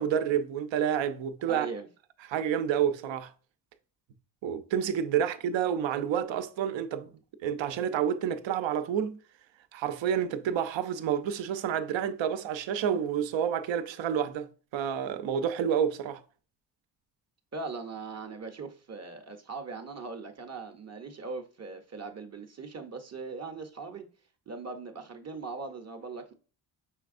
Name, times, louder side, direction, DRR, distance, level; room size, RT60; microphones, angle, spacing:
voice 1, 0.0-1.7 2.3-3.3 4.4-7.1 7.4-9.2 9.7-14.5 14.7-16.2, right 8 dB, 70° right, 0.7 m, -29 dB
voice 2, 1.5-1.9 5.2-5.3 17.5-24.1 24.5-26.3, right 4 dB, 35° right, 0.7 m, -40 dB
5.7 x 3.3 x 2.5 m
cardioid pair, 80°, 47 cm